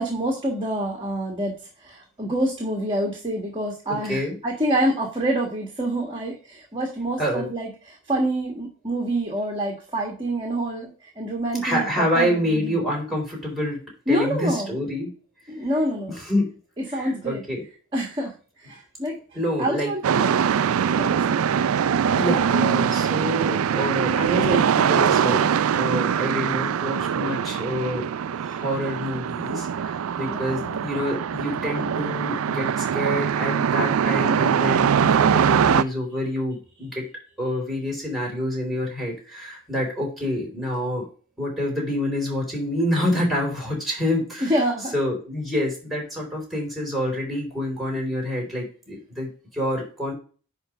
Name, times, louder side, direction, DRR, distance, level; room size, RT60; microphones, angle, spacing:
voice 1, 0.0-1.5 1.8-12.8 14.1-14.8 15.5-16.2 16.9-17.4 17.9-18.3 18.6-19.2 19.6-20.3 21.0-21.4 30.3-30.8 44.4-44.9, right 1 dB, 25° right, 1 dB, 1.6 m, -27 dB
voice 2, 3.9-4.4 7.2-7.5 11.6-15.1 16.1-16.4 16.9-17.6 19.3-19.9 22.2-28.1 28.4-37.1 37.4-41.1 41.4-44.5 44.9-50.1, equal, ahead, -1 dB, 3.9 m, -27 dB
sound 1, 20.0-35.8, right 7 dB, 70° right, 0.4 m, -22 dB
10.0 x 3.4 x 5.0 m, 0.37 s
head